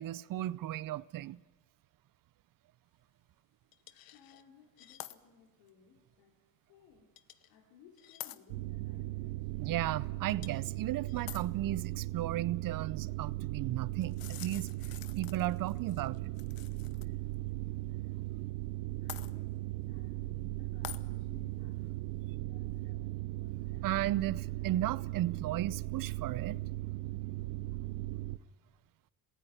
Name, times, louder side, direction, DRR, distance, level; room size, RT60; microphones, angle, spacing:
voice 1, 0.0-1.4 9.6-14.7 15.2-16.3 23.8-26.6, right 14 dB, 50° right, 0.7 m, -35 dB
sound 1, 3.7-4.4 4.8-5.2 5.7-5.8 7.2-7.5 8.0-8.4 10.3-10.7 11.1-11.5 14.0-17.1 17.3-17.4 19.1-19.3 20.8-21.0, left 13 dB, 55° left, 1.0 m, -47 dB
voice 2, 3.9-6.4 6.7-7.1 7.5-9.8 18.9-23.9, left 7 dB, 80° left, 3.1 m, -61 dB
sound 2, 8.5-28.4, right 18 dB, 85° right, 0.8 m, -38 dB
18.0 x 16.0 x 9.2 m
supercardioid pair, 85°, 43 cm